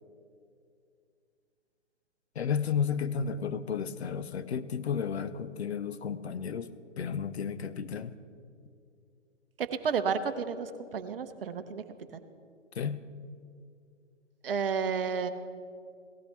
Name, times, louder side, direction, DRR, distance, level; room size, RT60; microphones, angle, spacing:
voice 1, 2.4-6.7 7.0-8.1 12.8-13.0, left 7 dB, 60° left, 13 dB, 0.7 m, -32 dB
voice 2, 9.6-11.8 12.1-12.2 14.4-15.3, right 6 dB, 50° right, 10 dB, 0.8 m, -31 dB
17.5 x 13.5 x 3.3 m, 2.3 s
figure-of-eight pair, 135°, 37 cm